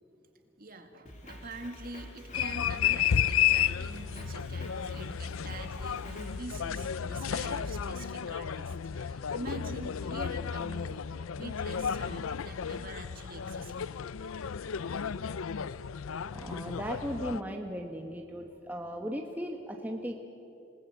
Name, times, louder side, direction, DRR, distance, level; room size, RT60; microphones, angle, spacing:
voice 1, 0.6-13.9, right 2 dB, 45° right, 5 dB, 2.1 m, -45 dB
Drum kit, 1.1-6.4, left 1 dB, 35° left, 3.4 m, -47 dB
sound 1, 2.3-17.4, left 8 dB, 75° left, 0.5 m, -32 dB
voice 2, 16.3-20.2, equal, 10° right, 2 dB, 1.1 m, -37 dB
27.5 x 19.5 x 7.9 m, 2.9 s
head